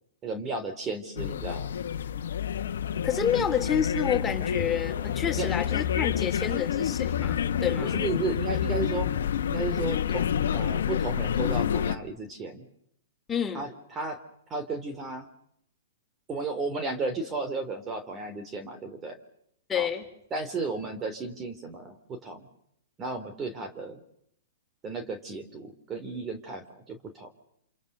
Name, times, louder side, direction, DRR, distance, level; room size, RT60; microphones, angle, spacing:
voice 1, 0.2-1.7 3.4-3.5 5.4-5.5 7.8-9.1 9.5-10.3 10.5-12.6 13.5-14.2 14.5-15.3 16.3-19.2 19.7-19.9 20.3-22.5 23.0-24.0 24.8-27.3, right 3 dB, 20° right, 8 dB, 3.0 m, -34 dB
sound 1, 1.2-12.0, left 8 dB, 70° left, 1.4 m, -28 dB
voice 2, 3.0-8.0 13.3-13.6 19.7-20.1, left 8 dB, 15° left, 3 dB, 4.1 m, -29 dB
28.5 x 27.0 x 6.7 m, 0.73 s
hypercardioid pair, 125°, 0 cm